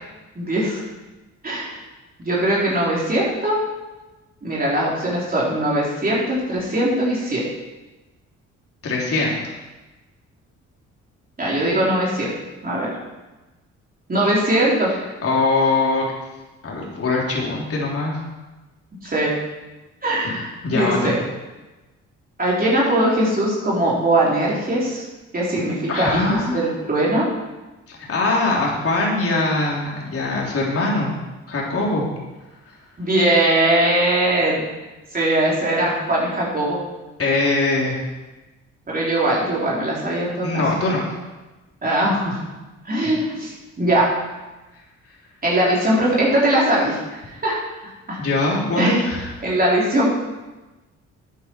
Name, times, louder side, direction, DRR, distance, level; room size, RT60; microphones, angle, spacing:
voice 1, 0.4-0.8 1.4-1.8 2.2-3.6 4.4-7.4 11.4-12.3 12.6-12.9 14.1-14.9 19.0-19.3 20.0-21.2 22.4-25.0 25.3-27.3 33.0-34.7 35.1-36.8 38.9-40.6 41.8-42.4 42.8-44.1 45.4-47.6 48.1-48.2 48.8-49.0 49.4-50.1, right 1 dB, 30° right, -5 dB, 3.9 m, -20 dB
voice 2, 8.8-9.4 15.2-16.1 16.6-18.2 20.6-21.1 25.9-26.7 27.9-31.1 31.5-32.1 32.7-32.8 37.2-38.1 40.4-41.1 43.0-43.1 48.2-49.3, left 2 dB, 50° left, -3 dB, 3.8 m, -22 dB
12.0 x 8.5 x 4.7 m, 1.1 s
cardioid pair, 80°, 29 cm